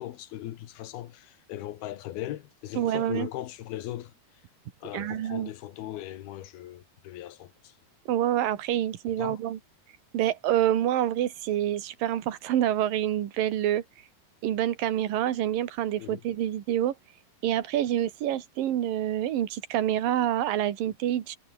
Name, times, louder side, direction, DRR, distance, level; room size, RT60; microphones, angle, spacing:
voice 1, 0.0-4.1 4.8-7.7 9.2-9.4 16.0-16.2, left 13 dB, 80° left, 3.3 m, -38 dB
voice 2, 2.7-3.3 4.9-5.5 8.1-9.6 10.1-13.8 14.4-16.9 17.4-21.4, right 11 dB, 65° right, 3.4 m, -27 dB
omnidirectional pair, 4.4 m